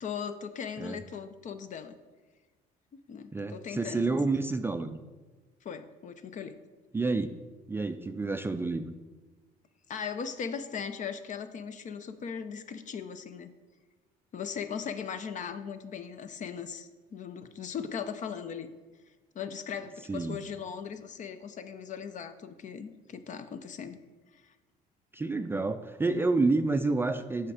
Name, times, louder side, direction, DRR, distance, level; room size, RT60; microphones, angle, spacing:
voice 1, 0.0-2.0 3.1-4.3 5.6-6.6 9.9-13.5 14.3-18.7 19.3-24.0, left 7 dB, 45° left, 10 dB, 0.6 m, -38 dB
voice 2, 3.3-5.0 6.9-7.3 7.7-8.9 20.1-20.4 25.1-27.5, right 3 dB, 15° right, 8 dB, 0.3 m, -29 dB
7.6 x 5.8 x 4.8 m, 1.3 s
cardioid pair, 110°, 17 cm